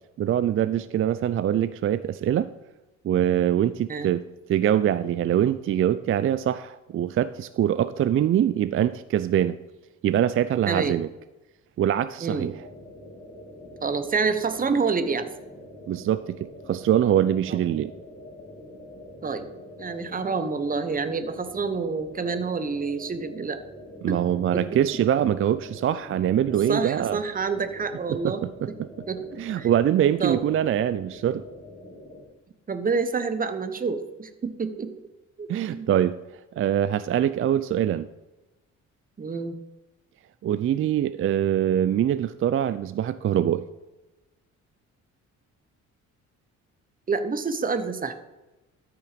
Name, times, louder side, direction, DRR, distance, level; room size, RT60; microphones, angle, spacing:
voice 1, 0.2-2.5 3.0-4.2 4.5-9.6 10.0-11.1 11.8-12.5 15.9-17.9 24.0-27.2 28.1-28.7 29.4-31.4 35.5-36.2 36.6-38.1 40.4-43.7, right 10 dB, 45° right, 14 dB, 0.4 m, -23 dB
voice 2, 12.2-12.6 13.8-15.3 17.5-17.6 19.2-19.5 19.8-23.6 24.1-24.2 24.5-24.6 26.7-28.4 29.1-29.2 29.6-29.7 30.2-30.4 32.7-34.9 35.4-35.9 39.2-39.5 47.1-48.1, right 4 dB, 30° right, 10 dB, 1.0 m, -27 dB
sound 1, 12.5-32.2, left 1 dB, 30° left, 3.4 m, -45 dB
13.0 x 6.0 x 5.1 m, 1.1 s
cardioid pair, 90°, 30 cm